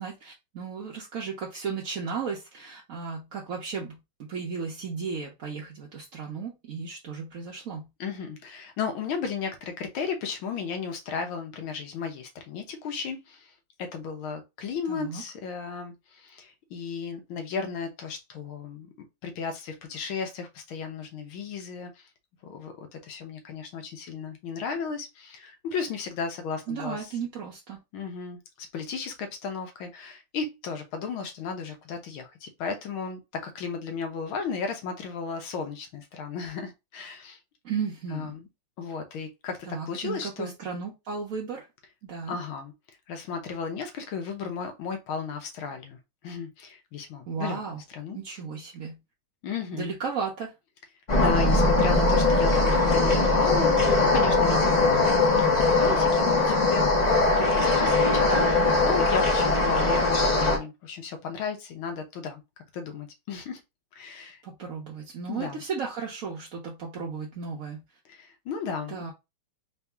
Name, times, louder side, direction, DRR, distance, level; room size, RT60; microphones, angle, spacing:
voice 1, 0.0-7.9 14.9-15.2 26.7-27.8 37.6-38.4 39.7-41.7 42.0-42.4 47.3-47.8 48.1-49.0 49.7-50.5 51.5-52.0 64.4-67.8 68.9-69.1, right 5 dB, 60° right, 0.9 m, -35 dB
voice 2, 8.0-13.5 13.8-18.9 19.2-22.0 22.4-27.1 27.9-37.4 38.1-38.5 38.8-39.6 39.9-40.5 42.3-42.7 43.1-46.0 46.2-47.6 47.9-48.2 49.4-49.9 51.2-62.4 62.7-63.6 63.9-64.4 65.3-65.6 68.1-69.0, left 5 dB, 75° left, 1.7 m, -34 dB
sound 1, 51.1-60.6, left 3 dB, 35° left, 0.7 m, -21 dB
3.9 x 2.7 x 3.4 m
omnidirectional pair, 2.3 m